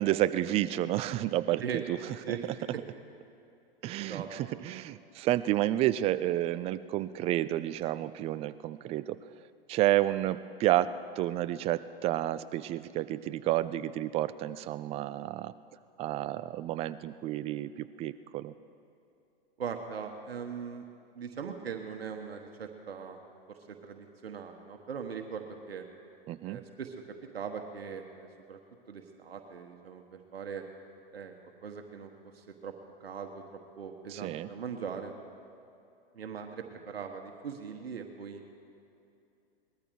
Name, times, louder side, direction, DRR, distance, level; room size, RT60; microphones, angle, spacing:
voice 1, 0.0-2.0 2.3-2.4 3.8-9.2 9.7-15.5 16.0-18.5 26.3-26.6 34.1-34.5, right 14 dB, 20° right, 15 dB, 0.4 m, -30 dB
voice 2, 19.6-20.8 21.1-23.2 23.5-25.8 26.4-26.9 27.3-28.6 28.9-30.6 31.1-31.3 31.6-32.1 32.3-32.7 33.0-33.4 33.8-35.1 36.1-38.4, right 6 dB, 80° right, 4 dB, 1.4 m, -40 dB
20.0 x 13.5 x 4.7 m, 2.7 s
hypercardioid pair, 115°, 30 cm